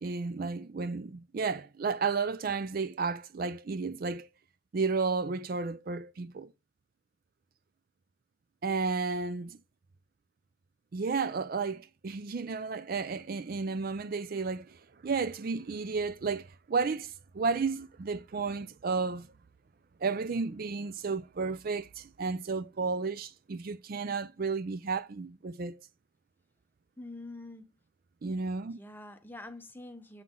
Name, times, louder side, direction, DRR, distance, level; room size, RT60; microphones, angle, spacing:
voice 1, 0.0-4.3 4.7-6.5 8.6-9.6 10.9-19.3 20.0-25.8 28.2-28.8, right 4 dB, 45° right, 0.4 m, -32 dB
voice 2, 27.0-27.7 28.7-30.2, left 2 dB, 10° left, 0.8 m, -45 dB
7.3 x 5.8 x 3.7 m
head